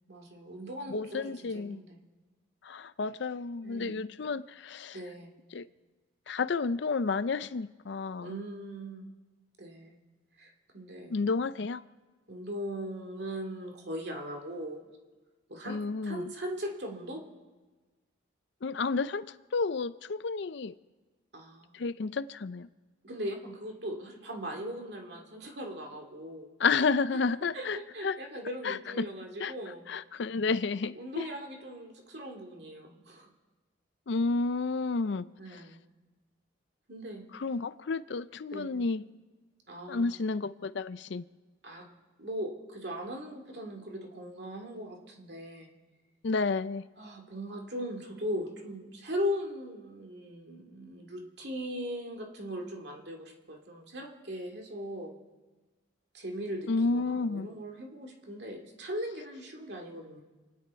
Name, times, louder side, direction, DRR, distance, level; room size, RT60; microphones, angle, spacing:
voice 1, 0.1-2.0 3.6-4.0 4.9-5.3 8.2-9.1 9.6-10.0 10.4-11.1 12.3-14.8 15.5-17.2 21.3-21.7 23.0-26.5 27.5-29.9 30.9-33.3 35.4-35.8 36.9-37.2 38.5-38.8 39.7-40.2 41.6-41.8 42.2-45.7 47.0-55.2 56.1-60.2, equal, 55° right, 2.3 m, -39 dB
voice 2, 0.9-1.8 2.6-5.0 5.5-5.7 6.3-8.4 11.1-11.8 15.6-16.3 18.6-20.7 21.7-22.7 26.6-28.2 28.6-29.1 29.4-29.5 29.9-31.3 34.1-35.6 37.3-39.0 39.9-41.2 46.2-46.9 56.7-57.5, left 4 dB, 60° left, 0.5 m, -31 dB
28.5 x 9.9 x 4.6 m
head